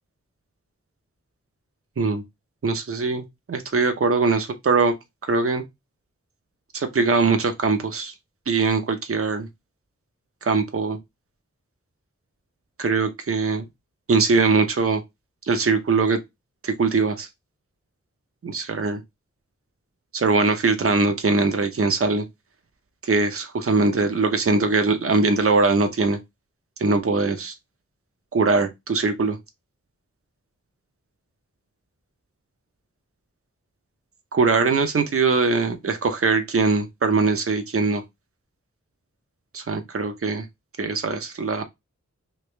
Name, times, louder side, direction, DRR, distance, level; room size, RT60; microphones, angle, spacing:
voice 1, 2.6-4.9 5.3-5.6 6.7-8.1 8.5-9.5 10.4-11.0 12.8-13.6 14.1-15.0 15.4-16.2 16.6-17.3 18.4-19.0 20.1-22.3 23.0-26.2 26.8-27.5 28.3-29.4 34.3-38.0 39.5-40.4 40.8-41.6, right 4 dB, 50° right, 0.7 m, -21 dB
3.3 x 2.9 x 3.2 m
wide cardioid pair, 65°, 29 cm